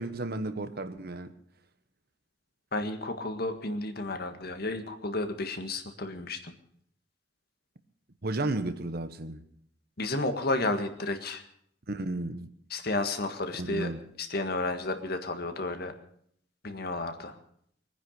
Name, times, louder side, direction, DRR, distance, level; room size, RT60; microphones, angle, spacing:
voice 1, 0.0-1.3 8.2-9.4 11.9-12.5 13.5-14.0, right 2 dB, 60° right, 1.2 m, -33 dB
voice 2, 2.7-6.4 10.0-11.4 12.7-13.9 14.2-15.9 16.6-17.4, left 2 dB, 60° left, 1.7 m, -32 dB
21.5 x 9.9 x 6.5 m
head